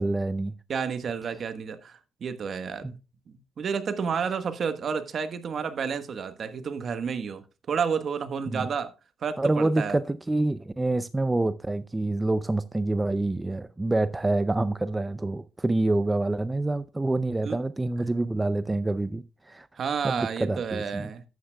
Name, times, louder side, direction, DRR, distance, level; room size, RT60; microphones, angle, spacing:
voice 1, 0.0-0.5 2.8-2.9 8.5-8.7 9.4-19.7 20.0-21.1, right 2 dB, 15° right, 0.4 m, -27 dB
voice 2, 0.7-3.0 3.3-7.4 7.7-8.9 9.2-9.9 17.4-17.6 18.0-18.1 19.8-21.2, right 6 dB, 55° right, 1.3 m, -30 dB
13.0 x 9.5 x 2.3 m
cardioid pair, 90°, 0 cm